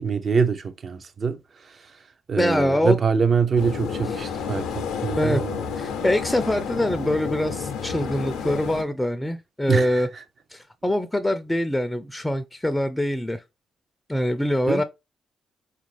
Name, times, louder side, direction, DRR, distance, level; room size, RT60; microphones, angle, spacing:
voice 1, 0.0-2.0 2.3-5.6 9.7-10.2 14.7-14.8, right 5 dB, 55° right, 0.5 m, -24 dB
voice 2, 2.4-3.0 4.2-4.3 5.1-5.4 5.8-10.1 10.5-13.4 14.1-14.8, left 1 dB, 10° left, 0.4 m, -24 dB
sound 1, 3.6-8.8, left 6 dB, 85° left, 0.5 m, -30 dB
3.7 x 2.4 x 3.2 m
supercardioid pair, 55°, 0 cm